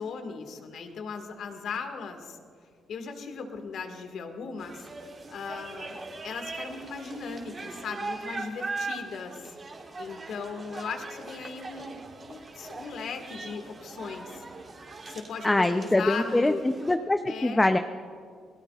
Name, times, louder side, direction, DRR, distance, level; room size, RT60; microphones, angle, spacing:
voice 1, 0.0-2.4 2.9-4.8 5.3-9.4 10.0-14.4 15.1-16.6 17.3-17.6, left 5 dB, 70° left, 5 dB, 2.0 m, -37 dB
sound 1, 4.6-17.0, right 3 dB, 35° right, 3.0 m, -40 dB
voice 2, 15.4-17.8, left 2 dB, 15° left, 7 dB, 0.7 m, -24 dB
29.0 x 19.0 x 2.5 m, 2.1 s
cardioid pair, 90°, 0 cm